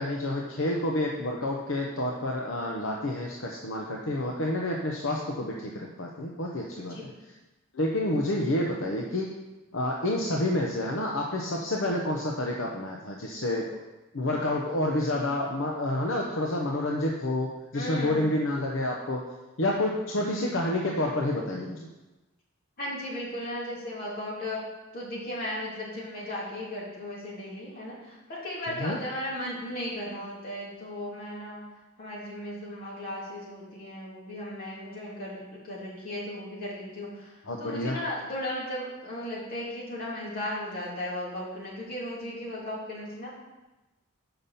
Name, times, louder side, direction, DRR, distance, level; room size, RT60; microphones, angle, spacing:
voice 1, 0.0-7.1 7.7-9.3 9.7-13.7 14.1-19.2 19.6-21.9 28.7-29.0 37.5-38.0, left 1 dB, 65° left, -1 dB, 0.8 m, -29 dB
voice 2, 17.7-18.3 22.8-24.6 24.9-31.6 32.0-43.3, left 1 dB, 45° left, -6 dB, 2.7 m, -36 dB
5.8 x 5.6 x 6.8 m, 1.1 s
head